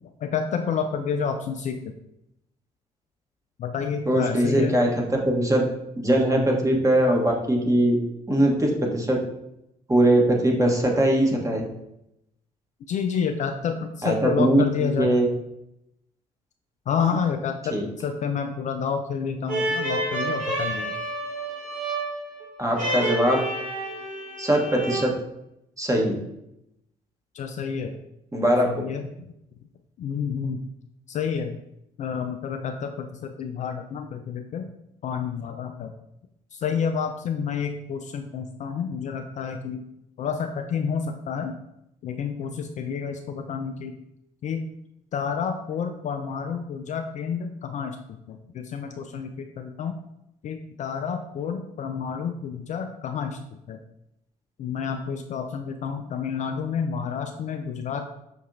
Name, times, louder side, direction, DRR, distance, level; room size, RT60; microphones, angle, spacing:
voice 1, 0.0-1.8 3.6-4.8 12.9-15.1 16.9-20.9 27.3-28.0 28.7-29.1 30.0-30.6 31.1-31.6 32.0-34.6 35.0-35.9 36.5-39.8 40.2-41.6 42.0-44.0 44.4-44.7 45.1-48.0 48.3-50.0 50.4-53.4 53.7-53.8 54.6-58.0, left 6 dB, 40° left, 5 dB, 0.4 m, -29 dB
voice 2, 4.1-4.9 5.2-5.6 6.0-8.0 8.3-9.2 9.9-11.6 14.0-15.3 17.7-17.8 22.6-23.4 24.4-25.1 25.8-26.2 28.3-28.7, right 1 dB, 15° right, 0 dB, 1.1 m, -21 dB
sound 1, 19.5-25.0, right 2 dB, 45° right, 1.4 m, -29 dB
5.9 x 2.7 x 2.6 m, 0.83 s
figure-of-eight pair, 45°, 19 cm